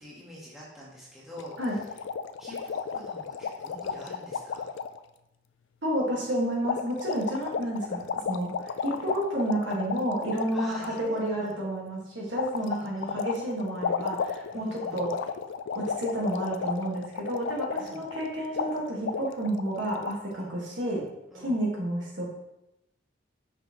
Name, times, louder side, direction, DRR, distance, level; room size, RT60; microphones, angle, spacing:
voice 1, 0.0-1.8 2.4-4.7 10.5-11.5 12.6-13.2 14.5-15.1 17.8-18.1 20.3-20.5 21.3-21.6, equal, ahead, -7 dB, 1.4 m, -46 dB
sound 1, 1.4-5.0 6.6-11.0 12.4-18.3 18.5-18.7 19.0-20.1, left 6 dB, 75° left, 0.3 m, -33 dB
voice 2, 5.8-15.1 15.7-21.0 21.3-22.2, right 1 dB, 75° right, -3 dB, 1.6 m, -30 dB
6.0 x 5.6 x 2.9 m, 0.90 s
head